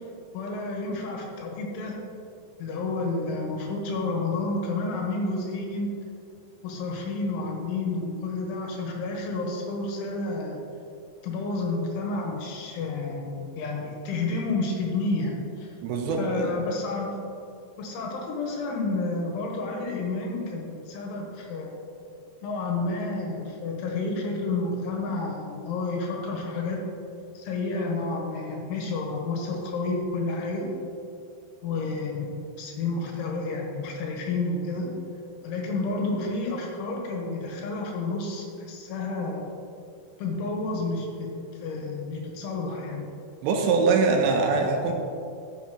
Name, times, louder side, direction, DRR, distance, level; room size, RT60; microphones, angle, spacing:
voice 1, 0.3-2.0 2.6-5.9 6.6-10.6 11.2-15.7 16.2-17.1 17.8-21.8 22.4-26.8 27.4-30.7 31.6-34.9 35.4-39.5 40.2-43.1, left 3 dB, 85° left, 0 dB, 3.6 m, -30 dB
voice 2, 15.8-16.5 43.4-44.9, right 4 dB, 80° right, 2 dB, 2.8 m, -23 dB
12.0 x 7.3 x 3.0 m, 2.5 s
omnidirectional pair, 5.5 m